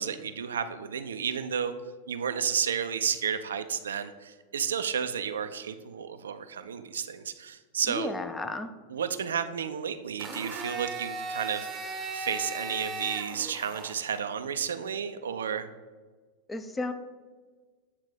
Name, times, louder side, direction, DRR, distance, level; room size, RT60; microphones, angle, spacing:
voice 1, 0.0-1.7 2.1-8.1 8.9-11.7 12.1-15.7, right 7 dB, 65° right, 10 dB, 0.3 m, -32 dB
voice 2, 7.9-8.7 16.5-16.9, left 3 dB, 10° left, 9 dB, 0.4 m, -33 dB
Domestic sounds home sounds, 10.2-14.2, right 3 dB, 20° right, 0.7 m, -37 dB
8.2 x 2.9 x 5.0 m, 1.4 s
figure-of-eight pair, 90°, 0 cm